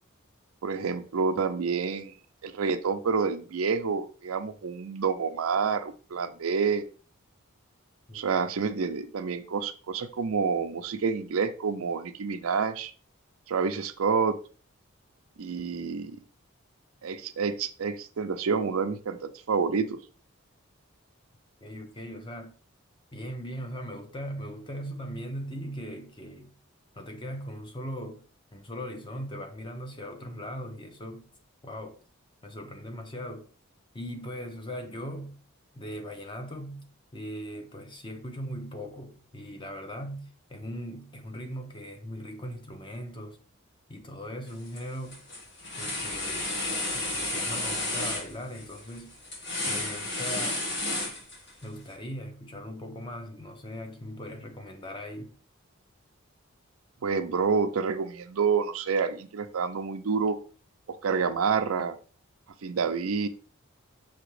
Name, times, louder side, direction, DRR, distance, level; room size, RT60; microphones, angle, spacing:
voice 1, 0.6-2.1 2.4-6.8 8.1-12.9 13.5-14.4 15.4-16.2 17.0-20.0 57.0-60.4 61.0-62.0 62.6-63.3, right 5 dB, 80° right, 0.5 m, -28 dB
voice 2, 21.6-22.6 23.1-26.5 26.9-28.2 28.5-31.3 31.6-32.0 32.4-33.5 33.9-35.4 35.7-36.8 37.1-43.4 43.9-45.2 45.7-46.5 46.9-49.2 49.7-50.6 51.6-55.3, equal, 20° left, 0.6 m, -39 dB
sound 1, 44.5-44.8 45.1-51.6, left 2 dB, 55° left, 1.6 m, -32 dB
5.9 x 2.8 x 3.1 m
head